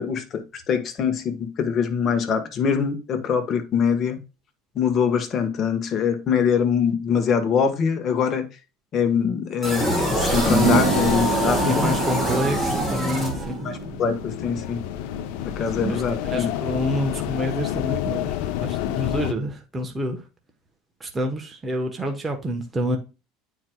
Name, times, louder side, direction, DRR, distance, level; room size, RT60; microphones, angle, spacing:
voice 1, 0.0-4.2 4.7-8.4 8.9-11.9 13.6-14.8 15.4-16.5, left 6 dB, 35° left, 1.2 m, -23 dB
sound 1, 9.6-13.8, equal, 10° left, 1.9 m, -24 dB
sound 2, 10.4-16.9, right 4 dB, 65° right, 2.2 m, -28 dB
voice 2, 11.6-13.6 15.7-20.2 21.0-23.0, equal, 15° right, 1.0 m, -28 dB
sound 3, 13.7-19.3, left 12 dB, 75° left, 0.6 m, -29 dB
9.3 x 4.6 x 2.2 m
supercardioid pair, 130°, 0 cm